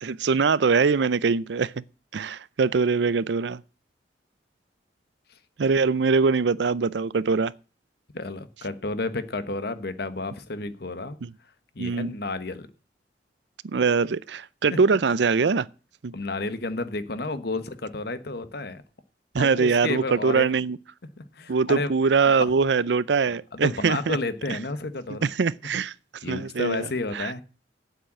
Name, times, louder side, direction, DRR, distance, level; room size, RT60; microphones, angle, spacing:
voice 1, 0.0-1.8 2.1-3.6 5.6-7.5 11.2-11.3 11.8-12.1 13.7-15.7 16.0-16.1 19.3-20.8 21.5-24.2 24.5-24.6 25.2-25.9 26.3-26.9 27.1-27.3, right 5 dB, 70° right, 0.5 m, -23 dB
voice 2, 8.1-11.2 11.7-12.7 14.7-14.8 16.1-18.8 19.4-20.5 21.2-21.9 22.4-22.5 23.5-25.3 26.2-27.4, left 2 dB, 60° left, 1.2 m, -31 dB
9.0 x 8.0 x 8.7 m
head